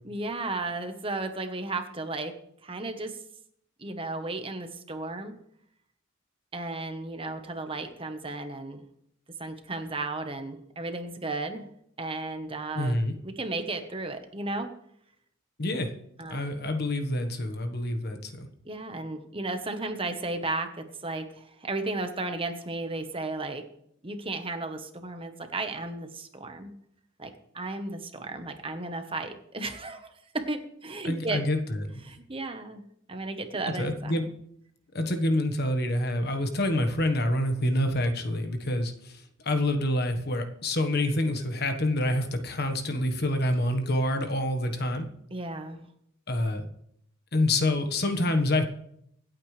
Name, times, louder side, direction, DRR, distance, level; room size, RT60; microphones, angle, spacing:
voice 1, 0.0-2.3 2.6-3.2 3.8-5.3 6.5-8.8 9.4-11.7 12.0-13.0 13.2-14.7 16.2-16.5 18.6-23.6 24.0-26.7 27.2-31.4 32.0-32.8 33.1-34.2 45.3-45.9, right 2 dB, 25° right, 7 dB, 1.1 m, -34 dB
voice 2, 12.7-13.1 15.6-15.9 16.3-18.5 31.0-32.0 33.8-34.2 34.9-45.1 46.3-46.7 47.3-48.6, left 1 dB, 50° left, 7 dB, 1.4 m, -27 dB
25.5 x 8.6 x 3.3 m, 0.72 s
head